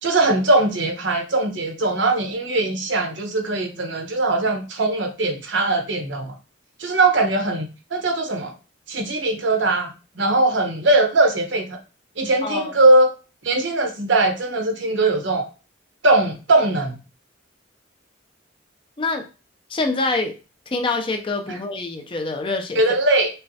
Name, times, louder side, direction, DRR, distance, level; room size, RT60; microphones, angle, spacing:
voice 1, 0.0-6.3 6.8-7.7 7.9-8.5 8.9-9.9 10.2-11.8 12.2-13.1 13.4-15.5 16.0-17.0 22.8-23.3, right 2 dB, 70° right, 0.9 m, -20 dB
voice 2, 12.4-12.7 19.0-19.3 19.7-20.3 20.7-22.8, left 3 dB, 25° left, 0.4 m, -25 dB
5.5 x 2.1 x 2.7 m
head